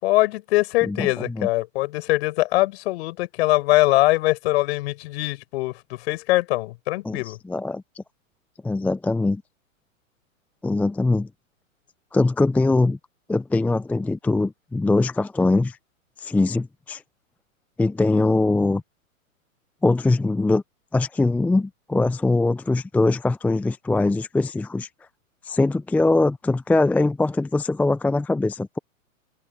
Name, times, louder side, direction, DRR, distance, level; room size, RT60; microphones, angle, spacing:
voice 1, 0.0-7.4, left 19 dB, 50° left, 7.1 m, -22 dB
voice 2, 7.0-8.0 8.6-9.4 10.6-11.3 12.1-13.0 13.3-15.8 16.2-17.0 17.8-18.8 19.8-20.6 20.9-24.9 25.4-28.8, left 2 dB, 5° left, 0.7 m, -22 dB
hypercardioid pair, 115°, 41 cm